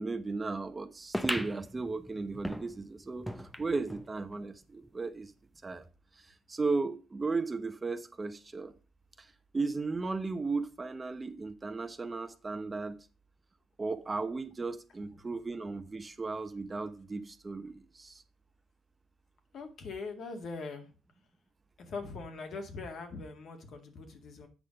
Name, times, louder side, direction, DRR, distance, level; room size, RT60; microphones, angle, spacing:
voice 1, 0.0-5.3 5.6-5.8 6.3-8.7 9.2-13.0 13.8-18.2, right 3 dB, 25° right, 0.9 m, -35 dB
sound 1, 1.1-4.1 4.5-4.6 4.8-4.9 5.7-5.8, equal, ahead, 0.7 m, -38 dB
voice 2, 19.5-20.9 21.8-24.5, left 4 dB, 65° left, 2.0 m, -41 dB
8.4 x 5.7 x 5.3 m
cardioid pair, 90°, 0 cm